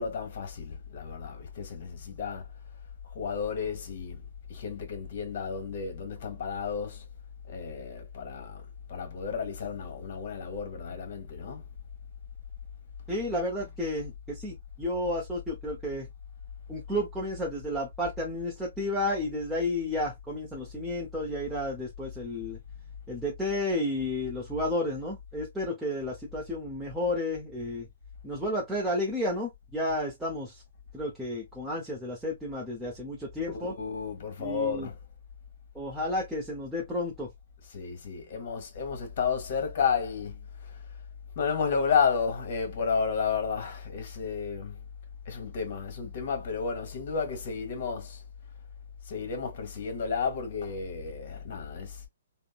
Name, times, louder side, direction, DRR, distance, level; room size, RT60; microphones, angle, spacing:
voice 1, 0.0-2.4 3.1-4.2 4.5-7.0 7.5-8.6 8.9-11.6 13.6-13.7 33.5-35.0 37.7-40.4 40.6-40.7 41.3-44.8 45.2-48.2 49.1-52.0, left 6 dB, 50° left, 1.2 m, -32 dB
voice 2, 13.1-16.1 16.7-22.6 23.1-27.9 28.2-30.6 30.9-33.7 34.4-34.9 35.7-37.3, left 1 dB, 5° right, 0.6 m, -32 dB
3.5 x 2.0 x 2.3 m
hypercardioid pair, 155°, 0 cm